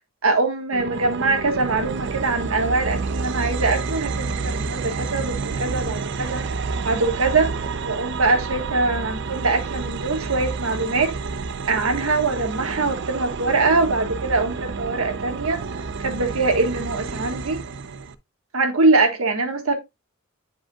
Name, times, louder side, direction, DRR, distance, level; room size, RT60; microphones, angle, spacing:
voice 1, 0.2-6.4 6.8-7.5 7.8-11.1 11.7-15.6 16.0-17.6 18.5-19.7, right 3 dB, 90° right, 1.5 m, -23 dB
sound 1, 0.7-18.1, right 4 dB, 55° right, 0.5 m, -29 dB
10.0 x 4.9 x 2.3 m
head